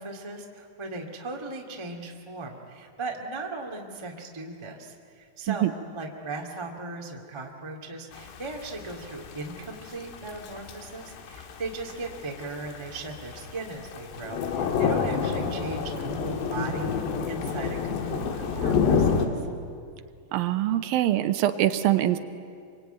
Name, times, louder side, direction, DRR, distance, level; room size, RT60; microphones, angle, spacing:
voice 1, 0.0-16.9 17.3-19.3, right 3 dB, 15° right, 1 dB, 1.0 m, -38 dB
Thunder / Rain, 8.1-19.3, left 6 dB, 75° left, 3.9 m, -29 dB
voice 2, 20.3-22.2, right 13 dB, 75° right, 10 dB, 2.3 m, -23 dB
25.0 x 24.5 x 9.2 m, 2.3 s
omnidirectional pair, 4.9 m